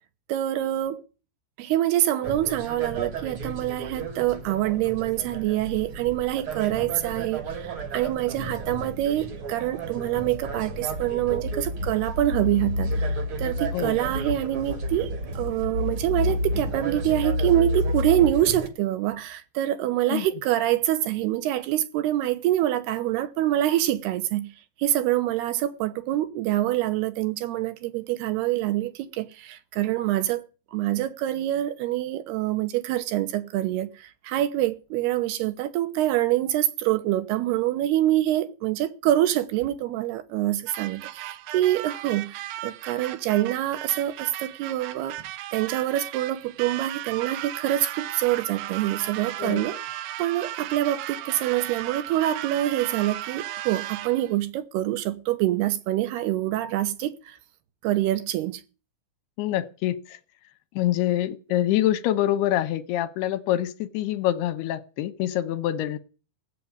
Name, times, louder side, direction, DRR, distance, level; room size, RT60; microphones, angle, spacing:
voice 1, 0.3-1.0 1.6-24.5 24.8-30.4 30.7-45.2 45.5-49.8 50.2-57.4 57.8-58.6, right 14 dB, 75° right, 3.0 m, -25 dB
sound 1, 2.2-18.7, equal, 45° right, 1.8 m, -31 dB
sound 2, 40.7-54.3, right 14 dB, 90° right, 3.2 m, -36 dB
voice 2, 59.4-60.2 60.8-66.0, left 13 dB, 75° left, 2.9 m, -25 dB
16.5 x 8.4 x 9.4 m
omnidirectional pair, 5.0 m